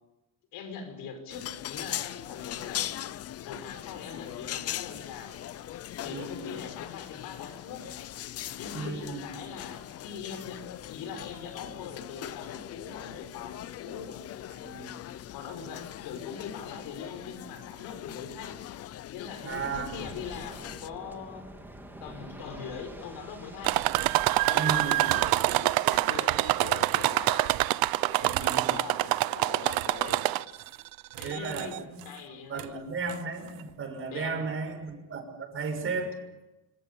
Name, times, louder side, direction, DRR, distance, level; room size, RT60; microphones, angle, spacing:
voice 1, 0.5-2.9 3.4-5.4 6.0-7.8 8.5-14.1 15.3-18.6 19.1-21.5 22.0-23.8 24.5-27.5 28.1-30.3 31.1-31.8 32.0-32.8 34.1-34.5, left 6 dB, 80° left, 6 dB, 5.9 m, -42 dB
sound 1, 1.3-20.9, left 12 dB, 45° left, 0.8 m, -40 dB
voice 2, 6.0-6.5 8.7-9.3 14.5-14.9 19.4-20.1 24.5-25.0 28.2-28.8 31.2-32.0 32.3-36.1, right 4 dB, 35° right, 5 dB, 6.0 m, -35 dB
Waves surf, 19.5-25.4, right 1 dB, 5° right, 3.2 m, -46 dB
sound 2, 23.6-30.7 31.2-31.8 32.6-32.7 33.1-33.2, right 17 dB, 75° right, 0.9 m, -26 dB
27.0 x 24.5 x 7.1 m, 1.0 s
cardioid pair, 160°, 35 cm